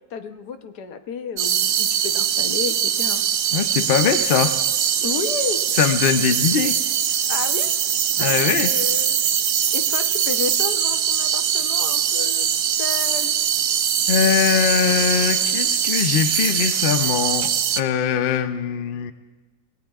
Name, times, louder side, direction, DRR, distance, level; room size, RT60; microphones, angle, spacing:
voice 1, 0.1-3.2 5.0-5.6 7.3-7.7 8.2-9.2 9.7-12.5 12.8-13.3, left 6 dB, 85° left, 8 dB, 1.5 m, -31 dB
sound 1, 1.4-17.8, right 9 dB, 80° right, 0.5 m, -22 dB
voice 2, 3.5-4.6 5.8-6.8 8.2-8.7 14.1-19.1, left 8 dB, 55° left, 10 dB, 0.6 m, -21 dB
27.5 x 18.0 x 2.4 m, 1.3 s
omnidirectional pair, 1.7 m